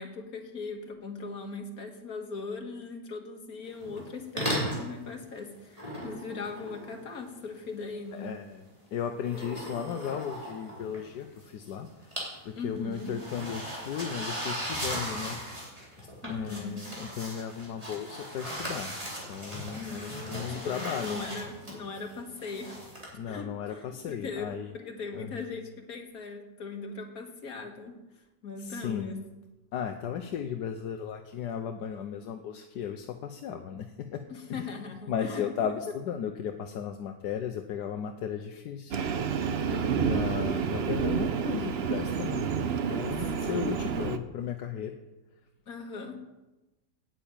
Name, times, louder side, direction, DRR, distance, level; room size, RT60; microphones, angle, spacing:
voice 1, 0.0-8.3 12.6-13.1 16.2-16.9 19.8-28.0 28.4-29.2 34.3-35.4 39.6-40.3 43.4-43.9 45.7-46.2, left 4 dB, 60° left, 3 dB, 2.1 m, -40 dB
sound 1, 3.8-4.1 4.4-4.9 5.7-7.4 9.2-11.4 11.7-12.4 12.6-23.1, equal, 20° right, 3.7 m, -37 dB
voice 2, 8.1-12.1 12.4-15.7 16.0-19.0 19.3-21.4 23.1-24.7 25.1-25.5 28.6-29.1 29.7-34.2 34.5-34.8 35.1-39.0 40.0-42.4 42.8-44.9, left 8 dB, 80° left, 5 dB, 1.4 m, -35 dB
Train, 38.9-44.2, right 6 dB, 55° right, 0.7 m, -29 dB
9.2 x 9.0 x 8.9 m, 1.1 s
omnidirectional pair, 1.8 m